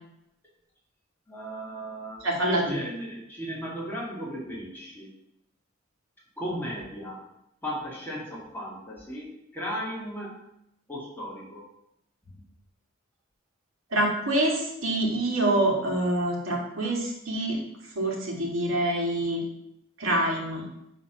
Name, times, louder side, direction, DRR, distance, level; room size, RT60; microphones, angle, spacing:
voice 1, 1.3-5.1 6.4-7.3 7.6-10.4 10.9-11.7 12.2-12.4, equal, 10° left, -5 dB, 2.0 m, -36 dB
voice 2, 2.2-2.7 13.9-17.6 18.0-19.4 20.0-20.6, right 1 dB, 90° right, -2 dB, 2.3 m, -26 dB
9.2 x 3.6 x 5.9 m, 0.80 s
head